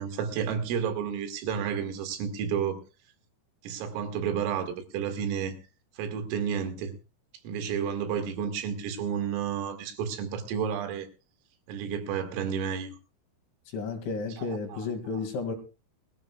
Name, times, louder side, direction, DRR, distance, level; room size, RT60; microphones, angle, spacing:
voice 1, 0.0-2.8 3.6-5.6 6.0-6.9 7.4-11.1 11.7-13.0 14.3-15.2, right 7 dB, 85° right, 7 dB, 4.6 m, -31 dB
voice 2, 13.7-15.6, left 4 dB, 70° left, 4 dB, 4.4 m, -32 dB
22.0 x 15.0 x 2.3 m, 0.31 s
omnidirectional pair, 5.7 m